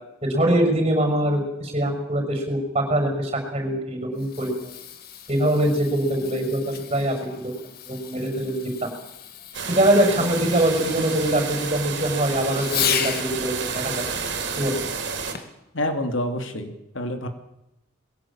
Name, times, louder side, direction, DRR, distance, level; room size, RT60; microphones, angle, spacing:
voice 1, 0.2-4.7 5.3-7.2 7.4-7.5 7.9-8.9 9.7-13.1 13.4-14.0 14.6-14.7, right 1 dB, 30° right, 4 dB, 6.4 m, -23 dB
Fireworks, 4.0-13.3 15.3-15.7 16.4-16.5, left 8 dB, 50° left, 2.0 m, -34 dB
sound 1, 9.5-15.3, right 5 dB, 55° right, 4.0 m, -30 dB
voice 2, 15.7-17.3, left 1 dB, 65° left, 6 dB, 3.0 m, -27 dB
22.0 x 17.0 x 8.9 m, 0.85 s
head